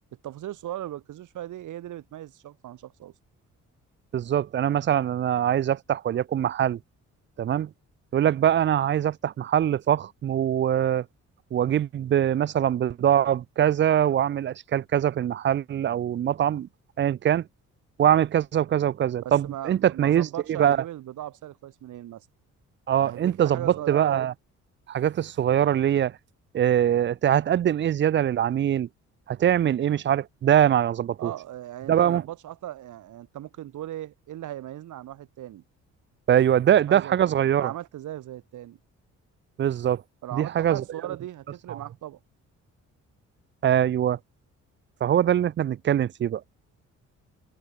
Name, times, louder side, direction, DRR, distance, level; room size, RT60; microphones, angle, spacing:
voice 1, 0.2-3.1 19.2-22.3 23.0-24.3 31.2-35.6 36.9-38.8 40.2-42.2, right 13 dB, 80° right, 4.7 m, -38 dB
voice 2, 4.1-6.8 7.4-7.7 8.1-11.1 11.5-16.7 17.0-17.5 18.0-20.8 22.9-24.3 24.9-26.1 26.5-28.9 29.3-31.3 31.9-32.2 36.3-37.7 39.6-40.0 40.3-40.8 41.7-41.8 43.6-44.2 45.0-46.4, right 10 dB, 40° right, 0.4 m, -23 dB
cardioid pair, 90°, 30 cm